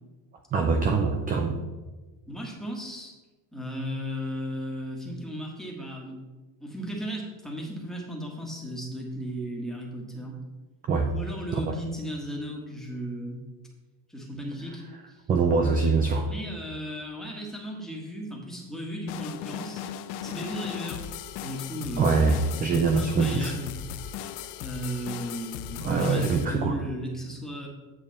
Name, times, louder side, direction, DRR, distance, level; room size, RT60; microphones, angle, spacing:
voice 1, 0.5-1.6 10.9-11.1 11.5-11.8 15.3-16.3 22.0-23.6 25.8-26.8, right 4 dB, 20° right, 4 dB, 0.3 m, -24 dB
voice 2, 2.3-3.1 3.5-6.2 6.6-10.4 11.1-13.4 14.1-15.2 16.2-19.8 20.2-21.0 21.4-23.8 24.6-27.7, equal, ahead, -2 dB, 1.6 m, -36 dB
sound 1, 19.1-26.5, left 10 dB, 90° left, 0.7 m, -37 dB
8.8 x 7.2 x 4.1 m, 1.2 s
cardioid pair, 160°, 48 cm